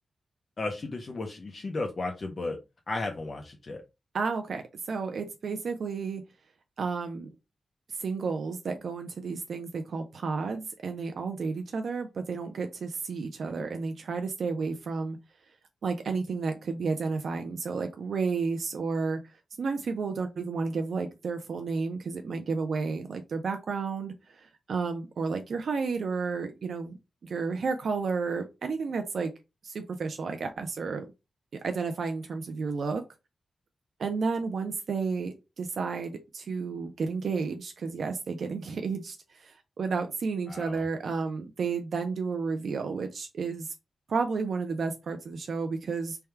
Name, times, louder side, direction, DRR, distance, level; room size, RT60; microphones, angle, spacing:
voice 1, 0.6-2.6 2.9-3.8 40.5-40.8, left 2 dB, 40° left, 2 dB, 0.6 m, -34 dB
voice 2, 4.1-6.2 6.8-7.3 7.9-15.2 15.8-19.2 19.6-26.9 27.2-29.3 29.6-31.1 31.5-33.0 34.0-43.7 44.1-46.2, right 4 dB, 65° right, 6 dB, 0.4 m, -32 dB
3.4 x 2.2 x 4.4 m, 0.26 s
wide cardioid pair, 170°, 0 cm